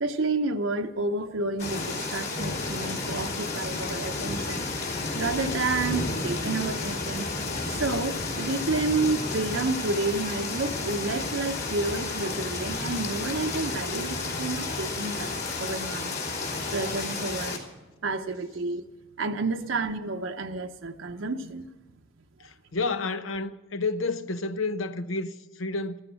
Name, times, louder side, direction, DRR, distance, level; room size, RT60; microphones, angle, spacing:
voice 1, 0.0-4.7 5.1-7.3 7.8-15.3 15.6-16.2 16.7-17.6 18.0-18.9 19.2-21.7, right 3 dB, 70° right, 0.8 m, -30 dB
sound 1, 1.6-17.6, left 3 dB, 55° left, 3.6 m, -31 dB
voice 2, 22.4-26.0, left 3 dB, 80° left, 0.9 m, -30 dB
15.0 x 14.5 x 6.3 m
head